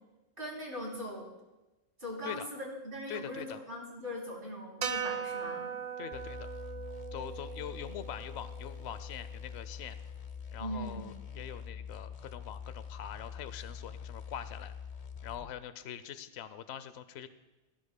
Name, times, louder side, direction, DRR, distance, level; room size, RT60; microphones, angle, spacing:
voice 1, 0.4-1.3 2.0-5.7 10.6-11.2, equal, 50° right, -3 dB, 3.5 m, -40 dB
voice 2, 3.1-3.6 6.0-6.5 7.1-10.0 10.5-14.7 15.2-17.3, left 10 dB, 70° left, 12 dB, 0.9 m, -43 dB
sound 1, 4.8-9.2, right 7 dB, 85° right, 1.1 m, -39 dB
sound 2, 6.1-15.6, left 7 dB, 40° left, 0.6 m, -45 dB
18.0 x 15.5 x 2.2 m, 1.1 s
omnidirectional pair, 1.2 m